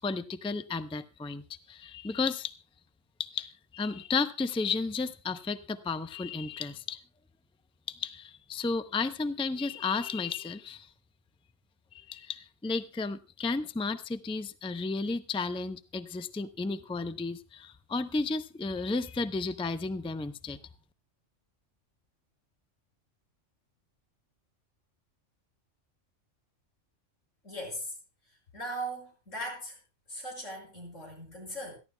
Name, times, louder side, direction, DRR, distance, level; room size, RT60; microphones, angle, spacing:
voice 1, 0.0-2.5 3.3-7.0 8.0-10.9 11.9-20.6, left 4 dB, 10° left, 11 dB, 0.3 m, -33 dB
voice 2, 27.4-28.0 28.5-29.8 30.1-31.7, right 1 dB, 80° left, 0 dB, 6.4 m, -39 dB
27.0 x 11.5 x 2.3 m, 0.29 s
omnidirectional pair, 1.3 m